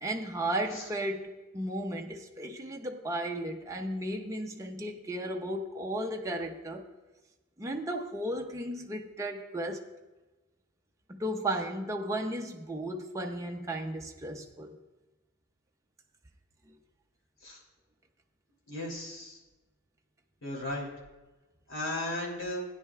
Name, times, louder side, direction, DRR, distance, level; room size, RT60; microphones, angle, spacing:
voice 1, 0.0-6.9 7.6-9.9 11.1-14.8, right 1 dB, 15° right, 0.6 m, -35 dB
voice 2, 18.7-19.4 20.4-20.9 21.7-22.6, left 1 dB, 60° left, 2.9 m, -35 dB
16.0 x 9.8 x 2.3 m
head